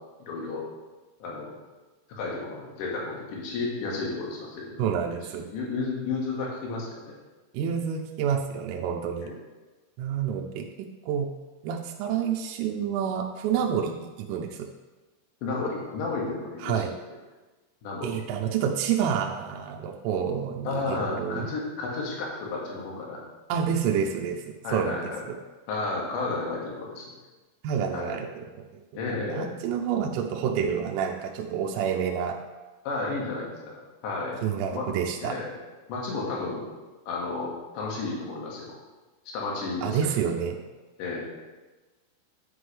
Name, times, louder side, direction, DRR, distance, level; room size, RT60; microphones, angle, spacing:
voice 1, 0.3-0.6 1.2-1.6 2.1-4.8 5.1-5.2 5.5-7.1 9.2-9.4 15.4-16.8 17.8-18.2 20.7-23.2 24.6-25.2 25.7-27.1 27.9-28.1 28.9-29.5 32.9-34.4 34.7-34.9 35.2-35.5 35.9-36.7 37.1-38.7 39.3-40.1 41.0-41.2, left 3 dB, 70° left, -2 dB, 3.9 m, -32 dB
voice 2, 4.8-5.5 7.5-9.3 10.0-10.7 11.0-11.3 11.6-14.7 16.6-16.9 18.0-21.5 23.5-25.4 27.6-28.6 29.1-32.4 34.4-35.4 39.8-40.6, right 7 dB, 85° right, 2 dB, 3.2 m, -28 dB
10.0 x 9.4 x 3.3 m, 1.2 s
omnidirectional pair, 5.8 m